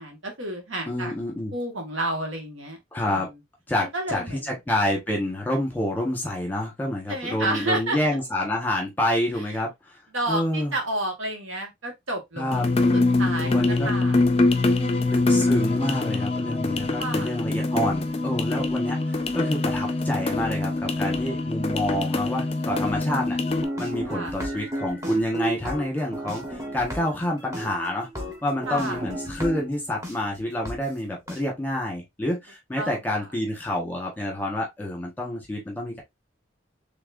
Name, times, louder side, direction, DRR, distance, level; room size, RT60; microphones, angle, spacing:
voice 1, 0.0-1.1 1.5-2.8 3.1-3.4 3.8-4.5 7.1-8.0 9.3-9.4 10.1-13.6 13.8-15.2 17.0-17.3 19.0-19.3 24.1-24.3 28.7-29.0 32.8-32.9, right 1 dB, 85° right, 1.8 m, -31 dB
voice 2, 0.9-1.5 2.9-3.3 3.7-9.9 10.3-10.7 12.4-12.6 13.4-13.9 15.1-23.4 23.8-28.1 28.4-36.0, left 1 dB, 10° left, 1.5 m, -28 dB
sound 1, 12.5-23.6, left 2 dB, 30° left, 0.5 m, -24 dB
sound 2, 23.4-30.1 30.6-30.7 31.3-31.4, right 1 dB, 15° right, 1.3 m, -33 dB
4.6 x 3.5 x 2.6 m
head